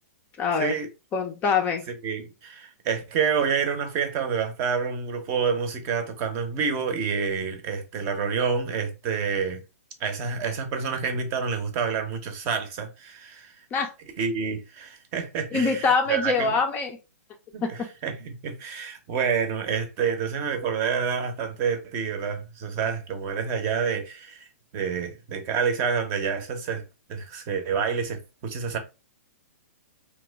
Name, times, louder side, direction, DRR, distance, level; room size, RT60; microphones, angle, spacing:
voice 1, 0.4-0.7 1.1-1.8 13.7-13.9 15.5-17.0 17.6-17.7, left 5 dB, 20° left, 0.4 m, -24 dB
voice 2, 2.0-9.6 10.0-13.6 14.2-16.5 17.5-17.6 18.0-24.5 24.7-26.8 27.1-28.8, right 6 dB, 30° right, 0.7 m, -28 dB
2.9 x 2.2 x 3.3 m
hypercardioid pair, 140°, 8 cm